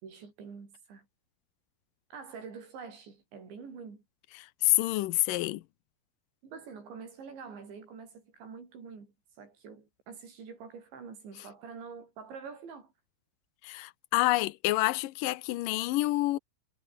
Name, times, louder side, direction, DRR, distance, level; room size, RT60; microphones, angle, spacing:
voice 1, 0.0-1.1 2.1-4.0 6.4-12.9, right 5 dB, 80° right, 8.6 m, -46 dB
voice 2, 4.6-5.6 13.6-16.4, left 18 dB, 85° left, 1.9 m, -27 dB
omnidirectional pair, 5.1 m